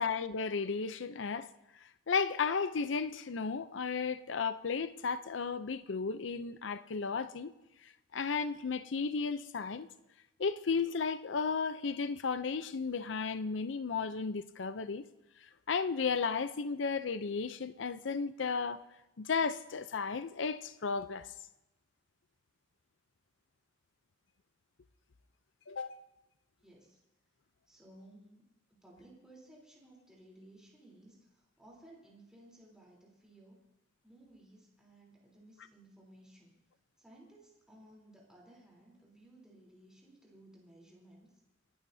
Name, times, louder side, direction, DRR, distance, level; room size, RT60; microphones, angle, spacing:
voice 1, 0.0-1.5 2.1-7.5 8.1-9.9 10.4-15.0 15.7-18.8 19.2-21.3 25.7-26.0, left 5 dB, 75° left, 0.6 m, -34 dB
voice 2, 26.6-27.0 27.7-28.4 28.8-33.6 34.0-36.5 37.0-41.3, right 1 dB, 5° right, 3.5 m, -58 dB
29.0 x 12.0 x 2.7 m
head